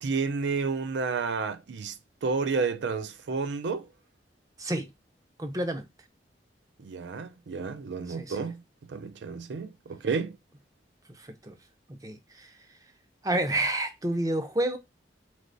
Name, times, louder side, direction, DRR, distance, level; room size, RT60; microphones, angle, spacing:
voice 1, 0.0-1.9 2.2-3.9 6.8-8.6 8.9-10.4, right 4 dB, 80° right, 0.4 m, -31 dB
voice 2, 5.4-5.9 8.2-8.5 11.2-11.6 11.9-12.5 13.2-14.8, right 1 dB, 20° right, 0.5 m, -29 dB
4.0 x 3.3 x 2.6 m
head